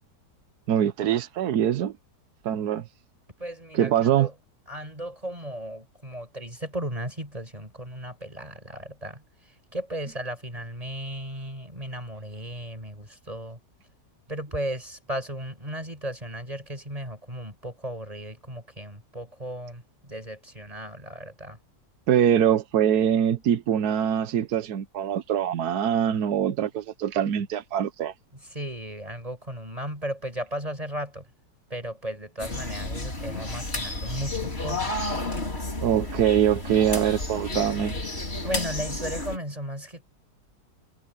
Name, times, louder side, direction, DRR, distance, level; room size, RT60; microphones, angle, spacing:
voice 1, 0.7-2.0 2.4-2.9 3.7-4.3 22.1-28.1 35.8-38.0, right 9 dB, 65° right, 1.3 m, -23 dB
voice 2, 3.4-4.3 4.7-13.6 14.3-21.6 28.3-31.3 31.7-34.9 38.4-40.0, right 1 dB, 20° right, 6.9 m, -35 dB
sound 1, 32.4-39.4, left 2 dB, 35° left, 4.0 m, -31 dB
omnidirectional pair, 1.9 m